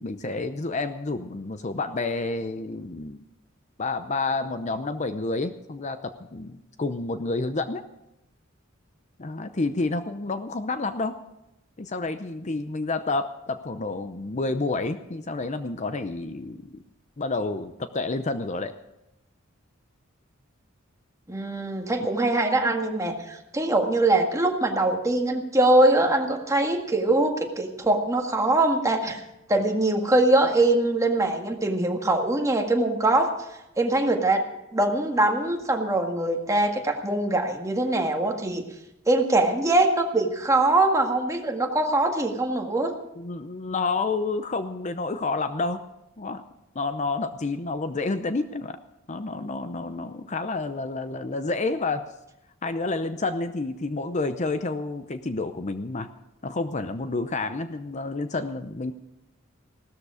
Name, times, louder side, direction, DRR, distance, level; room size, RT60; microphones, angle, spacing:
voice 1, 0.0-3.2 3.8-7.8 9.2-11.2 11.8-16.6 17.2-18.7 22.0-22.1 43.2-45.8 46.2-46.4 46.7-48.8 49.1-52.1 52.6-56.1 56.4-58.9, left 3 dB, 35° left, 10 dB, 0.7 m, -29 dB
voice 2, 21.3-29.2 29.5-33.3 33.8-34.5 34.7-38.7 39.1-42.9, right 2 dB, 15° right, 3 dB, 1.8 m, -22 dB
16.5 x 13.5 x 5.0 m, 0.90 s
head